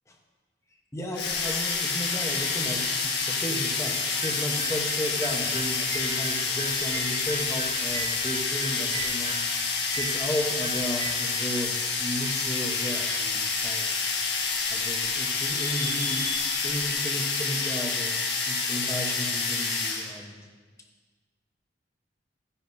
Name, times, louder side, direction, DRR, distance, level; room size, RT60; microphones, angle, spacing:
voice 1, 0.9-9.4 9.9-13.9 14.7-16.2 16.6-20.5, equal, 15° left, 1 dB, 1.1 m, -34 dB
sound 1, 1.2-20.1, left 4 dB, 75° left, 1.6 m, -28 dB
sound 2, 1.2-16.9, left 2 dB, 55° left, 1.5 m, -45 dB
sound 3, 3.9-11.1, right 3 dB, 35° right, 0.7 m, -39 dB
14.0 x 9.9 x 2.7 m, 1.4 s
head